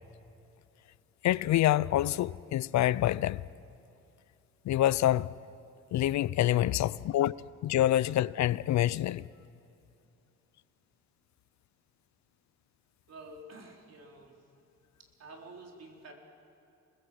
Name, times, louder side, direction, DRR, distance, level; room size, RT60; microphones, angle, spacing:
voice 1, 1.2-3.4 4.7-5.3 5.9-7.4 7.6-9.2, left 13 dB, 65° left, 0.5 m, -26 dB
voice 2, 13.1-14.3 15.0-16.1, right 2 dB, 55° right, 4.4 m, -49 dB
28.0 x 20.5 x 7.8 m
cardioid pair, 90°, 30 cm